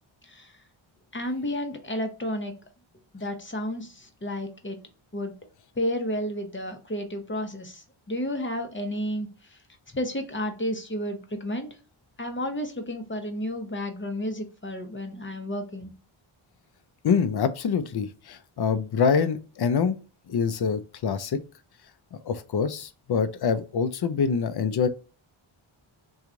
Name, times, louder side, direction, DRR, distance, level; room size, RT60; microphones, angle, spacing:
voice 1, 1.1-2.5 3.1-4.8 5.1-5.3 5.8-9.3 9.9-11.7 12.2-15.9, equal, 25° left, 0.8 m, -31 dB
voice 2, 17.0-20.0 20.3-21.4 22.1-24.9, left 6 dB, 50° left, 0.5 m, -25 dB
3.0 x 2.4 x 3.7 m
cardioid pair, 55°, 50 cm